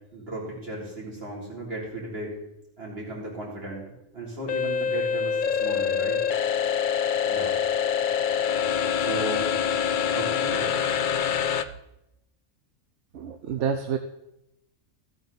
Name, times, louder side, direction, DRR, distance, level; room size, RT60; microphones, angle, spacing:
voice 1, 0.1-2.3 2.8-6.2 7.3-7.6 9.0-9.6 10.1-10.8, right 1 dB, 45° right, -5 dB, 3.9 m, -35 dB
sound 1, 4.5-11.6, left 7 dB, 70° left, 0.4 m, -25 dB
voice 2, 13.1-14.0, right 7 dB, 65° right, 7 dB, 1.0 m, -28 dB
14.5 x 8.8 x 4.1 m, 0.87 s
omnidirectional pair, 1.4 m